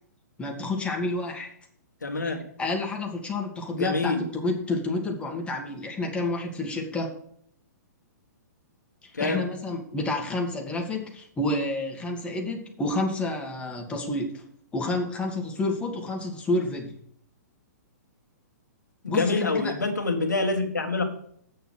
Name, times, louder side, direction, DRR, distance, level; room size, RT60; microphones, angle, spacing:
voice 1, 0.4-1.5 2.6-7.1 9.0-14.4 14.7-16.9 19.1-19.7, left 2 dB, 10° left, 1 dB, 1.9 m, -29 dB
voice 2, 2.0-2.4 3.7-4.2 9.1-9.4 19.0-21.0, left 3 dB, 90° left, 3 dB, 1.8 m, -26 dB
8.3 x 6.9 x 6.3 m, 0.65 s
hypercardioid pair, 125°, 9 cm